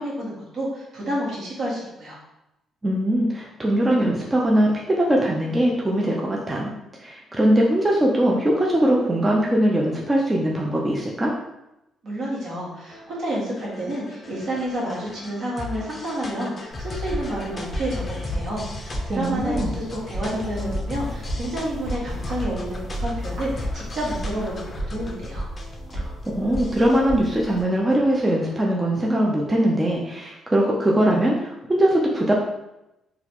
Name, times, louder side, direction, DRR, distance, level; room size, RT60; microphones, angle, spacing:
voice 1, 0.0-2.2 12.0-25.5, right 1 dB, 65° right, -5 dB, 1.4 m, -30 dB
voice 2, 2.8-6.7 7.0-11.3 19.1-19.7 25.9-32.3, right 1 dB, 20° right, -2 dB, 0.5 m, -21 dB
sound 1, 12.9-28.4, left 3 dB, 35° left, 0.5 m, -37 dB
sound 2, 16.7-27.6, right 1 dB, 85° right, 1.3 m, -33 dB
3.9 x 2.3 x 2.9 m, 0.90 s
cardioid pair, 90°, 0 cm